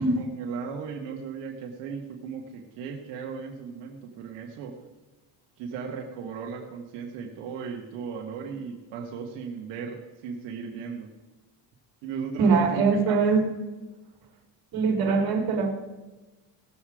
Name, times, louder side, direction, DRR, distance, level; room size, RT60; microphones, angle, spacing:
voice 1, 0.0-4.7 5.6-11.1 12.0-13.2, right 6 dB, 85° right, 0 dB, 1.8 m, -36 dB
voice 2, 12.4-13.5 14.7-15.7, right 4 dB, 55° right, 2 dB, 3.4 m, -22 dB
18.0 x 7.3 x 5.0 m, 1.1 s
cardioid pair, 130°, 42 cm